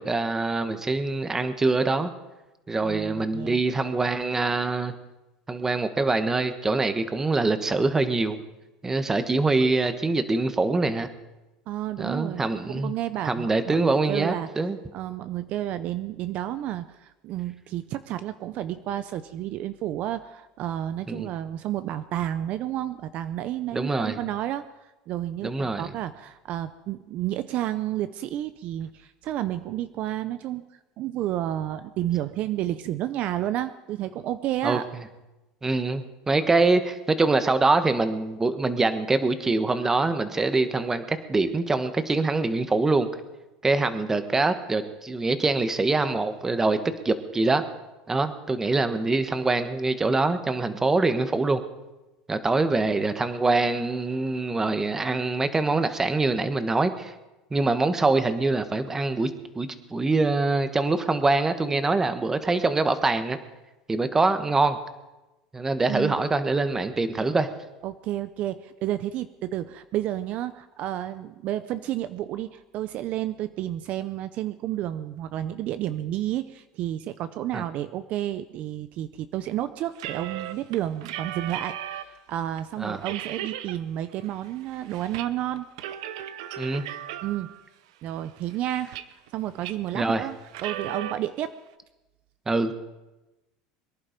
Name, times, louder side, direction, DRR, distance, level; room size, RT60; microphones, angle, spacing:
voice 1, 0.0-2.1 2.7-4.9 5.5-8.4 8.8-11.1 12.0-12.9 13.2-14.8 21.1-21.3 23.7-24.2 25.4-25.9 34.6-34.8 35.6-43.1 43.6-46.8 47.0-47.6 48.1-51.6 52.3-57.1 57.5-63.4 63.9-64.8 65.5-67.5 77.5-77.6 82.8-83.0 86.6-86.8 89.9-90.3 92.5-92.8, right 3 dB, 15° right, 10 dB, 1.3 m, -24 dB
voice 2, 2.8-3.6 11.7-12.4 12.7-14.5 14.9-24.7 25.1-30.6 31.0-34.9 65.9-66.2 67.8-85.7 87.2-87.5 88.0-88.9 89.3-90.3 90.6-91.5, right 12 dB, 50° right, 12 dB, 0.6 m, -31 dB
sound 1, 79.9-82.2 82.6-82.7 83.0-83.8 84.1-85.3 85.6-87.6 88.2-89.3 89.6-89.9 90.5-91.1, right 11 dB, 85° right, 0.8 m, -36 dB
23.0 x 11.0 x 5.2 m, 1.0 s
supercardioid pair, 125°, 3 cm